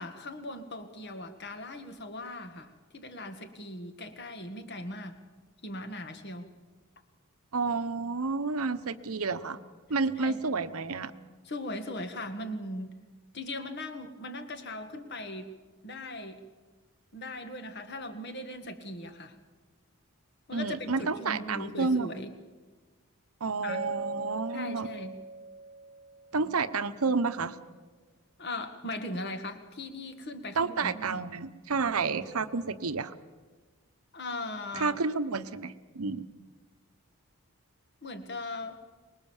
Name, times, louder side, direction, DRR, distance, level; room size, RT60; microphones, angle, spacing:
voice 1, 0.0-5.2 5.6-6.5 10.2-10.4 11.5-13.0 13.3-15.5 15.8-16.4 17.1-19.4 20.5-22.3 23.6-23.8 24.5-25.2 28.4-31.2 34.1-35.0 38.0-38.8, left 1 dB, 50° left, 7 dB, 1.8 m, -39 dB
voice 2, 7.5-9.6 9.9-11.1 20.5-22.1 23.4-24.9 26.3-27.6 30.5-33.1 34.7-36.2, right 4 dB, 85° right, 11 dB, 1.0 m, -30 dB
Mallet percussion, 23.7-26.7, right 2 dB, 30° right, 1.0 m, -40 dB
24.5 x 20.5 x 7.3 m, 1.3 s
head